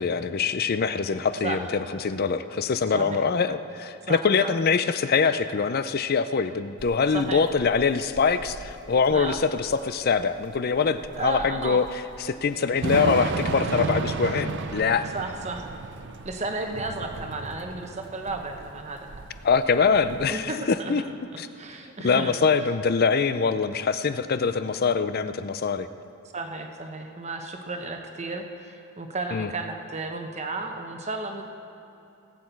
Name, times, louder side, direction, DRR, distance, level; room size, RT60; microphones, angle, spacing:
voice 1, 0.0-11.9 12.2-15.1 19.4-20.5 20.9-21.0 21.4-21.5 22.0-25.9 29.3-29.5, left 5 dB, 45° left, 12 dB, 0.4 m, -24 dB
voice 2, 4.1-4.5 7.1-7.4 9.1-9.4 11.2-11.8 15.1-15.7 16.2-19.2 20.3-20.9 21.5-22.3 26.3-31.4, right 3 dB, 30° right, 4 dB, 0.9 m, -33 dB
Thunder / Rain, 6.8-20.3, right 3 dB, 50° right, 0.6 m, -34 dB
19.0 x 8.6 x 4.6 m, 2.8 s
head